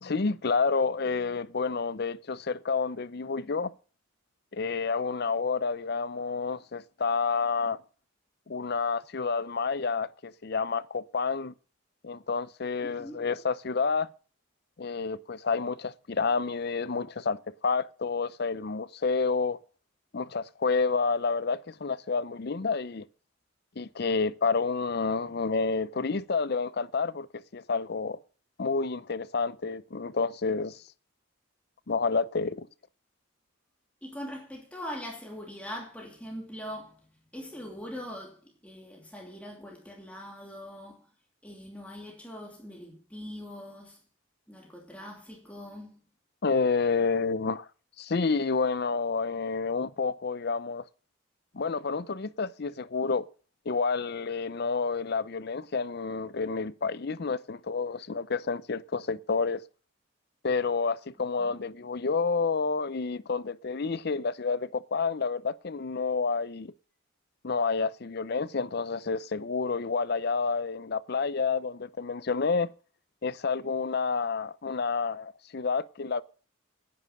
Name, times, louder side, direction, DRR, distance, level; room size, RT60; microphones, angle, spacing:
voice 1, 0.0-3.7 4.5-7.8 8.5-11.5 12.0-14.1 14.8-19.6 20.1-23.1 23.8-28.2 28.6-30.8 31.9-32.7 46.4-47.7 48.0-50.8 51.5-53.3 53.7-59.6 60.4-66.7 67.4-72.7 73.2-76.2, left 4 dB, 50° left, 0.5 m, -29 dB
voice 2, 34.0-37.1 37.3-41.1 41.4-44.0 44.5-46.1 61.4-61.6, equal, 5° left, 2.7 m, -42 dB
10.5 x 9.9 x 6.5 m
head